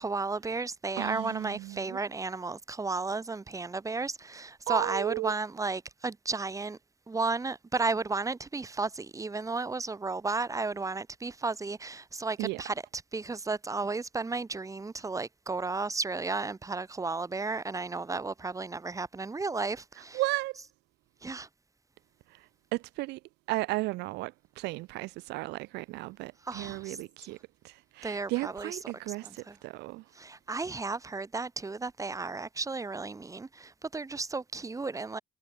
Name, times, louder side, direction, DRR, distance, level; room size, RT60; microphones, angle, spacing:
voice 1, 0.0-6.8 7.1-20.2 21.2-21.5 26.4-27.0 28.0-28.8 29.1-29.6 30.1-35.2, right 3 dB, 20° right, 2.4 m, -33 dB
voice 2, 1.0-2.0 4.7-5.3 12.4-12.6 20.1-20.6 22.7-23.2 23.5-27.4 27.6-30.0, right 21 dB, 85° right, 0.6 m, -34 dB
cardioid pair, 110°, 17 cm